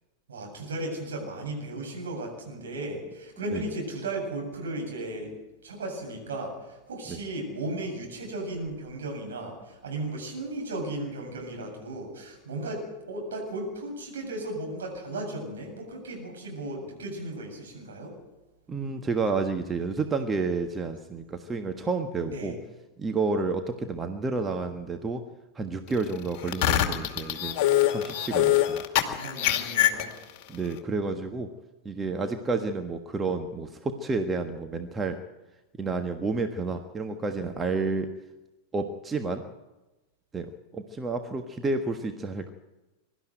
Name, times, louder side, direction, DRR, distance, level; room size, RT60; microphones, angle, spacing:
voice 1, 0.3-5.3 5.6-6.5 6.9-18.1 22.3-22.6 28.0-28.4 29.0-30.1, right 2 dB, 65° right, 1 dB, 7.8 m, -35 dB
voice 2, 18.7-22.5 23.0-25.2 25.5-27.6 27.9-28.8 30.5-31.5 31.8-35.2 35.8-38.1 38.7-39.4 40.3-42.5, right 3 dB, 15° right, 5 dB, 1.4 m, -30 dB
sound 1, 26.4-30.4, left 13 dB, 45° left, 2.3 m, -24 dB
23.0 x 12.5 x 9.3 m, 1.1 s
figure-of-eight pair, 90°, 0 cm